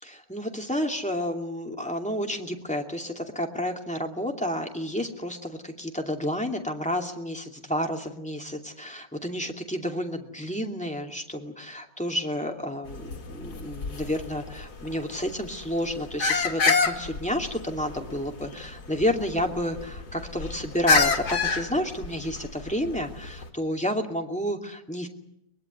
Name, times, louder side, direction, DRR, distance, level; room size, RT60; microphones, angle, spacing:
voice 1, 0.0-25.1, equal, 5° left, 3 dB, 2.5 m, -30 dB
sound 1, 12.9-23.5, left 4 dB, 60° left, 2.7 m, -29 dB
23.0 x 22.0 x 9.5 m, 0.79 s
omnidirectional pair, 1.9 m